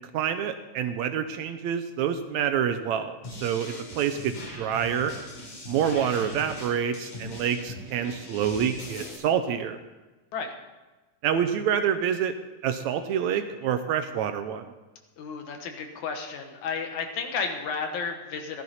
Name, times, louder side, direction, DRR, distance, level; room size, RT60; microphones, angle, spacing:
voice 1, 0.1-5.1 5.7-9.8 11.2-12.3 12.6-14.7, right 8 dB, 75° right, 9 dB, 1.8 m, -27 dB
sound 1, 3.2-9.2, left 2 dB, 85° left, 5.2 m, -40 dB
voice 2, 15.2-18.6, left 5 dB, 70° left, 4 dB, 2.6 m, -32 dB
15.0 x 12.5 x 4.2 m, 1.2 s
omnidirectional pair, 3.6 m